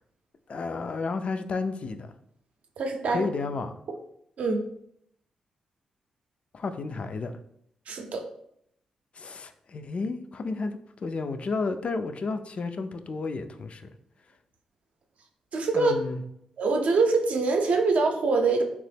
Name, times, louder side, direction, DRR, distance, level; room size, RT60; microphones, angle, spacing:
voice 1, 0.5-2.1 3.1-3.7 6.5-7.4 9.1-13.9 15.7-16.2, left 3 dB, 50° left, 0.3 m, -32 dB
voice 2, 2.8-3.3 4.4-4.6 7.9-8.2 15.5-15.9 16.6-18.6, right 3 dB, 65° right, 0.5 m, -24 dB
2.9 x 2.1 x 3.3 m
supercardioid pair, 50°, 2 cm